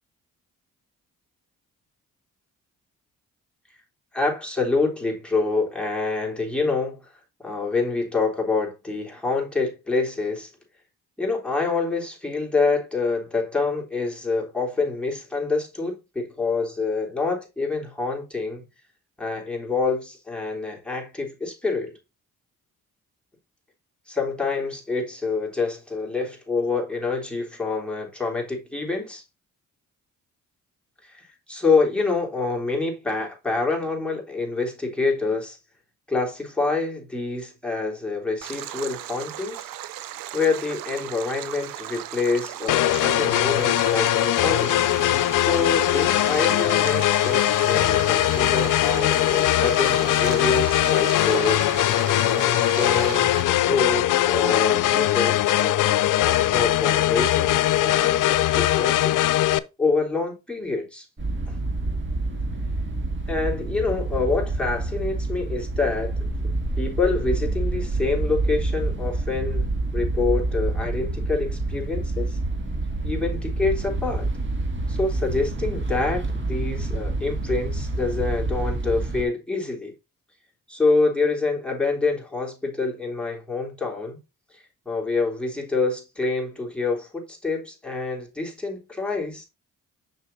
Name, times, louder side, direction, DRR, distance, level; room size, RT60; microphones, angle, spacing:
voice 1, 4.1-7.0 7.4-10.5 11.2-18.6 19.2-22.0 24.1-29.2 31.0-35.6 36.1-39.7 40.0-44.8 45.3-51.6 52.3-53.3 53.7-59.3 59.8-61.1 61.5-61.6 63.3-66.2 66.8-72.4 73.0-74.3 74.9-79.9 80.7-84.2 84.5-89.4, left 3 dB, 5° left, 3.4 m, -26 dB
Stream, 38.4-53.4, right 13 dB, 85° right, 0.7 m, -36 dB
sound 1, 42.7-59.6, left 14 dB, 70° left, 0.5 m, -21 dB
sound 2, 61.2-79.2, right 2 dB, 35° right, 2.0 m, -27 dB
6.4 x 6.0 x 2.7 m
cardioid pair, 75°, 33 cm